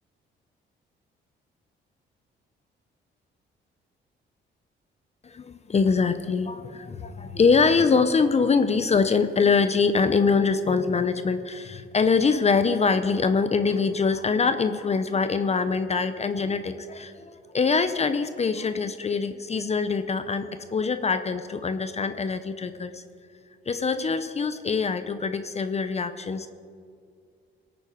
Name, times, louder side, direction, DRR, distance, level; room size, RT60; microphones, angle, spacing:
voice 1, 5.2-23.0 23.7-26.5, left 5 dB, 35° left, 10 dB, 0.7 m, -24 dB
18.5 x 8.9 x 5.0 m, 2.2 s
cardioid pair, 90°, 20 cm